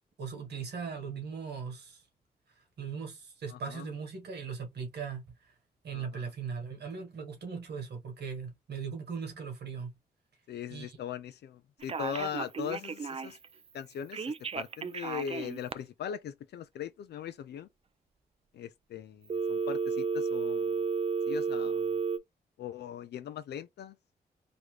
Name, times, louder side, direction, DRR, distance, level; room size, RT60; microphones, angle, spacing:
voice 1, 0.2-2.0 2.8-5.3 5.8-9.9 10.7-11.0, right 6 dB, 75° right, 1.6 m, -39 dB
voice 2, 3.5-3.9 5.9-6.3 10.5-13.4 13.7-17.7 18.5-20.9 21.3-22.0 22.6-24.0, left 9 dB, 75° left, 0.4 m, -40 dB
Telephone, 11.8-13.5 14.1-15.7 19.3-22.2, right 6 dB, 35° right, 0.4 m, -32 dB
3.0 x 2.4 x 3.2 m
cardioid pair, 55°, 17 cm